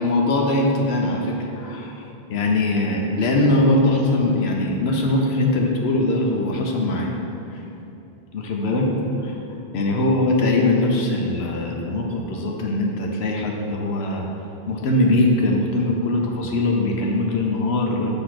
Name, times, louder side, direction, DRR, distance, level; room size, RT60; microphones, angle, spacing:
voice 1, 0.0-7.1 7.5-7.6 8.3-8.9 9.2-9.3 9.7-14.3 14.7-18.1, left 2 dB, 90° left, 0 dB, 1.0 m, -21 dB
6.6 x 3.0 x 5.8 m, 2.8 s
omnidirectional pair, 1.0 m